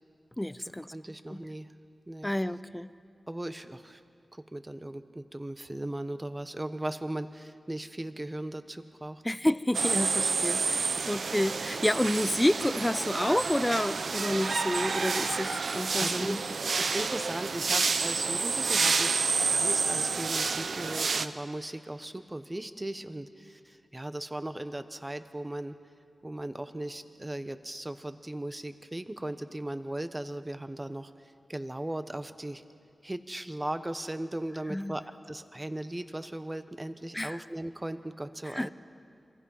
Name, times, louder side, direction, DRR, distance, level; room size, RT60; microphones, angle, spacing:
voice 1, 0.4-0.9 1.3-1.5 2.2-2.9 9.2-16.4 34.7-35.0 37.1-37.4 38.4-38.7, left 1 dB, 10° left, 15 dB, 0.7 m, -29 dB
voice 2, 0.9-1.7 2.1-2.3 3.3-4.0 4.3-9.2 10.0-10.1 11.0-11.1 16.0-16.3 16.8-25.8 26.2-32.6 33.0-35.0 35.3-38.7, right 1 dB, 20° right, 10 dB, 1.1 m, -37 dB
sound 1, 9.7-21.3, right 4 dB, 80° right, 0.8 m, -29 dB
27.5 x 24.0 x 5.6 m, 2.4 s
wide cardioid pair, 70°, 0 cm